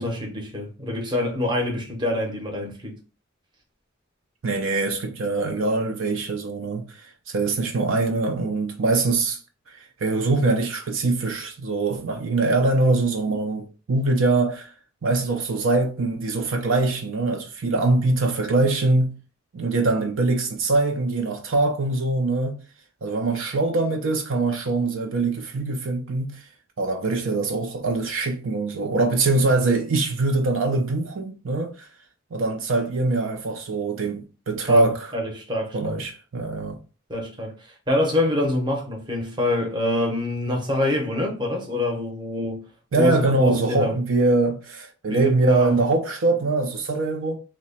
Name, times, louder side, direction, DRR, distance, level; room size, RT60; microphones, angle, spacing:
voice 1, 0.0-2.9 34.7-36.0 37.1-42.6 43.0-44.0 45.1-45.7, left 1 dB, 20° right, 0.8 m, -26 dB
voice 2, 4.4-7.0 7.3-9.4 10.0-14.7 15.0-19.1 19.5-22.6 23.0-26.4 26.8-31.9 32.3-35.1 35.7-36.8 42.9-47.4, right 3 dB, 70° right, 0.5 m, -23 dB
2.9 x 2.1 x 4.1 m
head